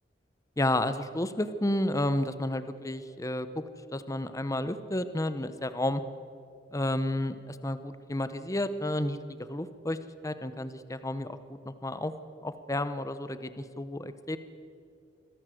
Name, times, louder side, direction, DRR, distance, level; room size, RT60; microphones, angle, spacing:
voice 1, 0.6-3.5 3.9-6.0 6.7-10.0 10.2-12.1 12.4-14.4, left 1 dB, 20° left, 12 dB, 0.8 m, -31 dB
25.0 x 17.0 x 7.7 m, 2.4 s
head